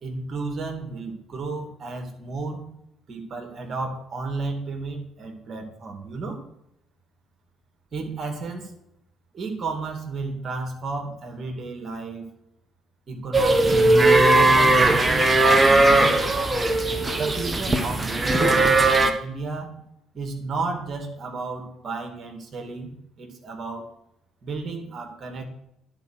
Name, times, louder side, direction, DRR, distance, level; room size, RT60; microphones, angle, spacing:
voice 1, 0.0-2.7 3.1-6.4 7.9-8.7 9.3-12.3 13.1-16.3 17.1-19.7 20.1-23.9 24.4-25.5, right 3 dB, 45° right, 3 dB, 2.3 m, -33 dB
sound 1, 13.3-19.1, right 2 dB, 25° right, 1.1 m, -18 dB
10.5 x 4.8 x 6.3 m, 0.79 s
figure-of-eight pair, 50°, 0 cm